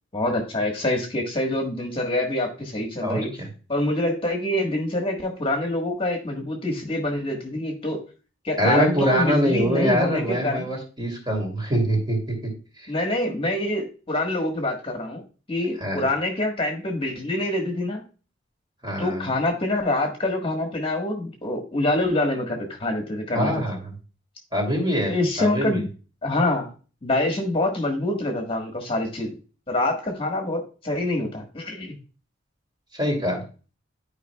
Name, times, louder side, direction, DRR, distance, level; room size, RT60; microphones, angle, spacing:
voice 1, 0.1-3.3 3.7-8.0 8.4-10.7 12.9-15.2 15.5-18.0 19.0-23.5 25.1-25.8 26.2-26.7 27.0-29.3 29.7-32.0, left 1 dB, 30° left, 2 dB, 1.4 m, -25 dB
voice 2, 3.0-3.5 8.6-12.5 12.8-12.9 15.8-16.0 18.8-19.3 23.3-23.9 24.5-25.8 32.9-33.4, equal, 25° right, 0 dB, 2.7 m, -24 dB
12.0 x 4.9 x 2.3 m, 0.35 s
head